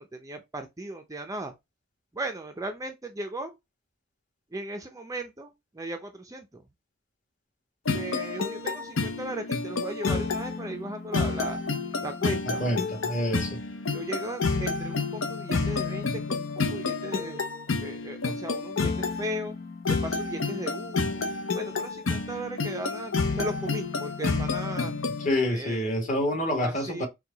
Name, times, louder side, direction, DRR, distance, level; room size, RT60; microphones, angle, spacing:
voice 1, 0.0-1.5 2.1-3.6 4.5-6.6 7.9-11.6 12.0-12.7 13.9-17.4 17.8-19.6 19.9-21.2 21.5-24.9 25.5-26.0 26.6-27.1, right 1 dB, 15° right, 0.5 m, -37 dB
sound 1, 7.8-25.3, left 4 dB, 70° left, 0.7 m, -30 dB
voice 2, 12.4-13.6 25.2-27.1, left 1 dB, 40° left, 1.5 m, -27 dB
4.5 x 2.3 x 3.9 m
head